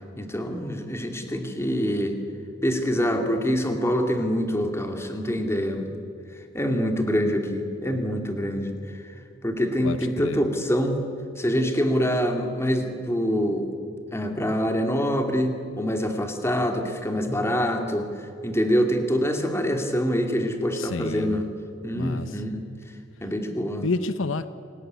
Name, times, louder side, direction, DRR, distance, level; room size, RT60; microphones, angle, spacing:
voice 1, 0.2-2.2 2.6-6.0 6.5-9.0 9.4-11.0 11.4-13.7 14.1-21.4 21.8-22.6 23.2-23.9, equal, 15° left, 4 dB, 2.5 m, -25 dB
voice 2, 9.8-10.4 20.7-21.4 21.9-22.4 23.8-24.5, left 3 dB, 75° left, 12 dB, 0.9 m, -29 dB
28.0 x 18.5 x 9.5 m, 2.5 s
head